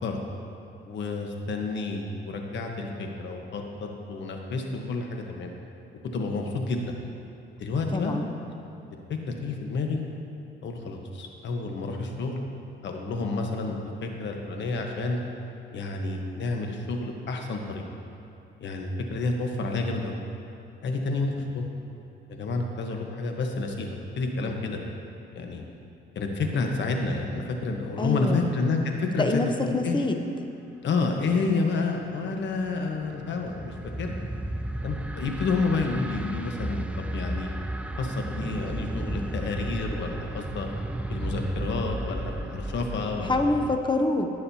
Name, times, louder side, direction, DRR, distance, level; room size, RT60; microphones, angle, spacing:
voice 1, 0.8-5.5 6.1-6.8 7.6-8.2 9.1-10.0 10.6-12.4 12.8-15.2 15.7-17.8 18.6-20.2 20.8-21.9 22.3-24.8 25.3-25.6 26.1-29.5 29.8-30.0 30.8-34.2 34.8-37.5 38.0-40.7 41.1-43.4, left 3 dB, 65° left, 2 dB, 1.2 m, -29 dB
voice 2, 7.9-8.3 28.0-28.5 29.2-30.2 43.2-44.3, left 2 dB, 25° left, 4 dB, 0.8 m, -25 dB
sound 1, 32.0-43.8, right 1 dB, 5° right, 0.4 m, -34 dB
19.5 x 6.5 x 2.8 m, 2.7 s
cardioid pair, 90°, 20 cm